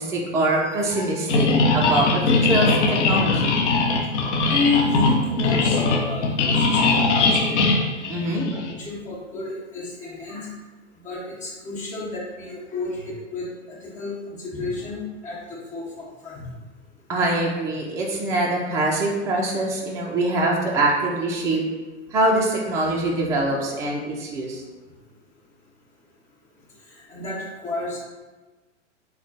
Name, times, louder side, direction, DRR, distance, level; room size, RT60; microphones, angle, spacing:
voice 1, 0.0-1.5 1.7-2.8 3.0-3.6 6.2-7.0 8.1-8.6 17.1-21.6 22.1-24.6, right 2 dB, 10° right, -2 dB, 0.4 m, -24 dB
sound 1, 1.3-8.7, left 3 dB, 65° left, 0.8 m, -20 dB
voice 2, 1.3-2.1 3.9-4.0 4.4-7.7 8.1-8.4 8.8-10.5 11.0-13.5 13.8-16.5 26.9-28.0, left 3 dB, 20° left, -5 dB, 1.2 m, -30 dB
4.3 x 2.2 x 4.0 m, 1.2 s
hypercardioid pair, 115°, 36 cm